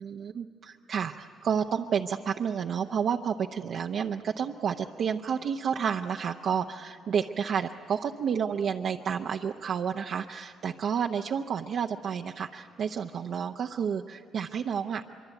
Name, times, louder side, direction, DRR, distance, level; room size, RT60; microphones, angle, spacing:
voice 1, 0.0-15.0, right 7 dB, 65° right, 3 dB, 0.8 m, -30 dB
24.0 x 24.0 x 9.1 m, 2.2 s
cardioid pair, 90°, 0 cm